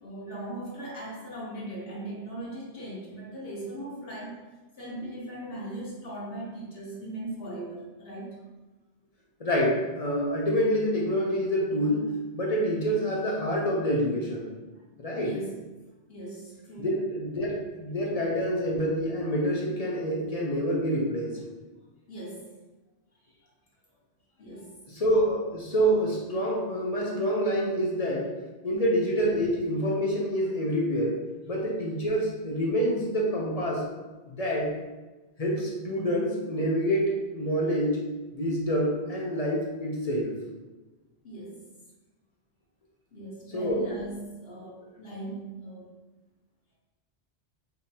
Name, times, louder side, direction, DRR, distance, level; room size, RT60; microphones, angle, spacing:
voice 1, 0.0-4.4 4.8-8.4 14.7-14.8 15.2-15.6 16.1-17.0 22.1-22.5 23.2-23.3 24.4-24.8 41.2-41.6 43.1-45.9, right 1 dB, 60° left, -5 dB, 1.4 m, -39 dB
voice 2, 9.4-14.5 15.0-15.3 16.8-21.4 24.9-28.3 28.6-31.2 31.5-33.8 34.3-34.7 35.4-38.0 38.3-40.3 43.5-43.8, equal, 40° left, -3 dB, 0.8 m, -27 dB
5.2 x 2.8 x 2.8 m, 1.2 s
omnidirectional pair, 1.1 m